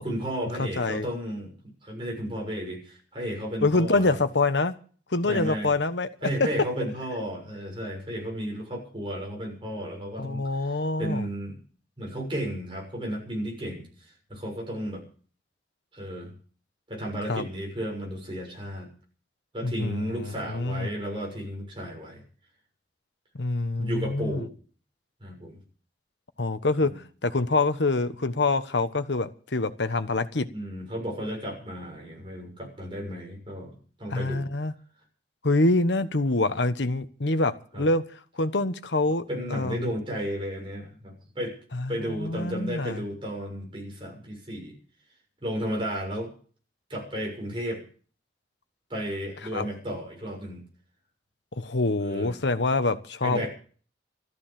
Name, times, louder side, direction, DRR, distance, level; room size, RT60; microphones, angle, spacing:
voice 1, 0.0-1.6 1.8-4.2 5.2-5.7 6.2-11.6 12.0-15.0 15.9-16.4 16.9-18.9 19.5-22.2 23.8-24.5 25.2-25.6 26.8-27.0 30.5-34.5 37.7-37.9 39.3-41.6 41.9-44.7 45.4-46.3 46.9-47.8 48.9-50.6 52.0-52.4 53.2-53.5, equal, 30° right, 0 dB, 6.8 m, -33 dB
voice 2, 0.6-1.1 3.6-4.7 5.1-6.1 6.4-6.5 10.2-11.3 17.3-17.4 19.6-20.9 23.3-24.4 26.4-30.5 34.1-34.7 35.4-38.0 38.3-39.2 39.5-39.9 41.7-43.0 49.5-49.7 51.6-53.5, left 2 dB, 80° left, 11 dB, 1.2 m, -26 dB
13.5 x 13.0 x 7.5 m, 0.43 s
head